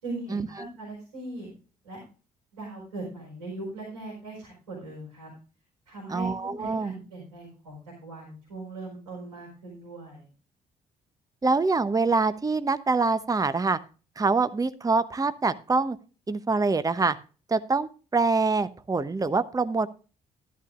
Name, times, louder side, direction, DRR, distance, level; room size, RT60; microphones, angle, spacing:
voice 1, 0.0-1.5 1.8-2.0 2.5-5.3 5.9-6.3 6.6-10.3, right 2 dB, 90° right, -5 dB, 4.4 m, -39 dB
voice 2, 6.1-6.9 11.4-13.8 14.2-16.0 16.3-17.2 17.5-19.9, right 3 dB, 20° right, 13 dB, 0.9 m, -25 dB
13.0 x 11.0 x 2.5 m, 0.35 s
figure-of-eight pair, 45°, 19 cm